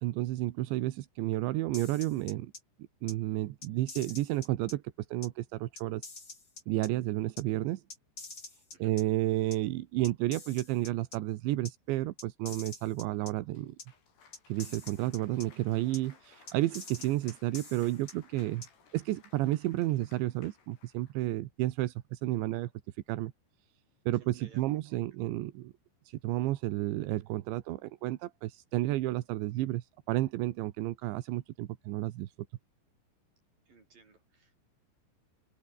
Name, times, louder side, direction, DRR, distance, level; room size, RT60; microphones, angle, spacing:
voice 1, 0.0-2.5 3.0-4.8 5.1-6.0 6.7-7.8 8.8-13.8 14.5-18.7 18.9-22.7 23.1-23.3 24.1-25.7 26.1-32.3, right 16 dB, 85° right, 3.4 m, -31 dB
sound 1, 1.7-2.6 3.1-3.2 3.6-4.7 5.2-5.3 5.8-6.9 7.4-7.5 7.9-9.0 9.5-9.6 10.0-11.2 11.6-11.7 12.2-13.3 13.8-13.9 14.3-15.5 15.9-16.0 16.5-18.1 18.6-18.7, left 3 dB, 25° left, 5.1 m, -46 dB
Cheering / Applause, 13.5-21.2, left 6 dB, 65° left, 6.9 m, -61 dB
voice 2, 24.2-25.0 33.7-34.6, right 4 dB, 50° right, 9.2 m, -59 dB
open air
omnidirectional pair, 5.2 m